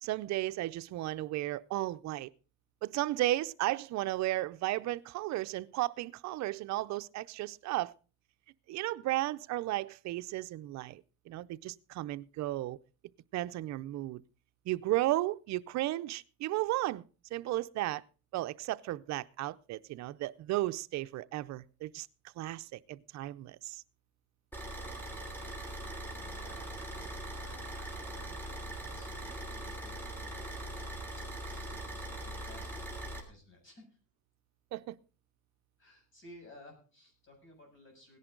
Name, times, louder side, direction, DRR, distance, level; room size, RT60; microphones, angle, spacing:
voice 1, 0.0-2.3 2.8-7.9 8.7-12.8 13.3-14.2 14.7-17.0 17.3-18.0 18.3-22.1 22.4-23.8 34.7-35.0, right 16 dB, 60° right, 0.6 m, -34 dB
Car / Idling, 24.5-33.2, right 1 dB, 5° left, 3.1 m, -41 dB
voice 2, 25.2-31.0 31.3-32.9 33.3-34.0 35.8-38.2, left 1 dB, 40° left, 7.2 m, -57 dB
17.5 x 10.5 x 3.8 m
cardioid pair, 140°, 32 cm